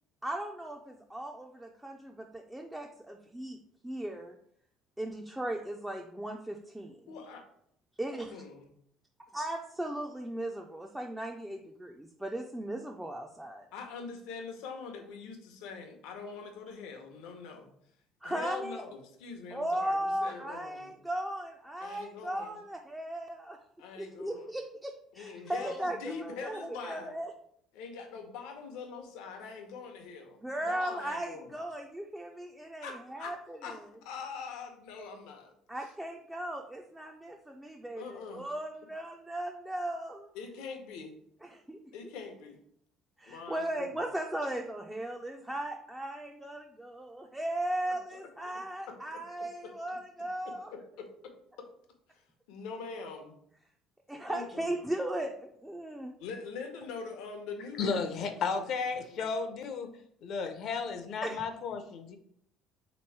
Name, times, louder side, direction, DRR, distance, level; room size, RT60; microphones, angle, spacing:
voice 1, 0.2-4.4 5.0-7.2 8.0-8.4 9.3-13.7 18.2-18.8 19.5-23.6 24.0-27.3 30.4-33.8 35.7-40.3 41.4-41.8 43.2-50.7 54.1-56.2 61.2-61.4, right 1 dB, 5° right, 2 dB, 0.3 m, -37 dB
voice 2, 7.1-7.4 8.3-8.6 13.7-17.7 18.2-20.9 21.8-22.6 23.8-24.5 25.2-27.2 27.7-31.5 32.8-33.3 33.6-35.5 38.0-38.4 40.3-41.1 41.9-42.6 43.3-43.9 47.9-48.6 48.9-49.2 49.6-49.7 50.4-51.3 52.5-53.4 54.3-54.7 56.2-58.7 59.1-59.5, left 5 dB, 85° left, 4 dB, 0.7 m, -43 dB
voice 3, 57.8-59.9 60.2-62.2, left 5 dB, 55° left, 7 dB, 0.5 m, -33 dB
3.5 x 3.0 x 4.5 m, 0.68 s
cardioid pair, 135°, 0 cm